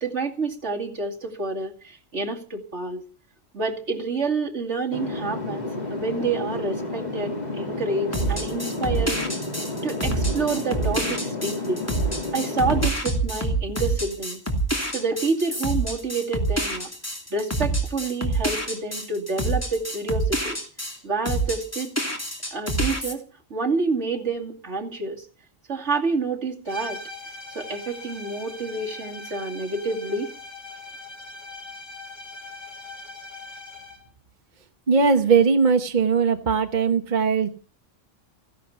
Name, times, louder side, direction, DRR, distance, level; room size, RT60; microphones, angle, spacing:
voice 1, 0.0-3.0 3.5-7.3 7.6-9.2 9.8-11.8 12.3-14.4 14.9-16.9 17.3-20.6 21.0-21.9 22.5-23.2 23.5-25.3 25.7-27.0 27.5-30.3, right 3 dB, 65° right, 0 dB, 2.9 m, -28 dB
sound 1, 4.9-12.9, left 2 dB, 35° left, 3.0 m, -31 dB
sound 2, 8.1-21.0 21.2-23.1, right 2 dB, 10° left, 2.7 m, -27 dB
sound 3, 26.7-34.1, left 3 dB, 65° left, 4.5 m, -40 dB
voice 2, 34.9-37.5, right 5 dB, 40° right, 6 dB, 1.2 m, -19 dB
16.0 x 11.0 x 6.9 m, 0.39 s
omnidirectional pair, 1.3 m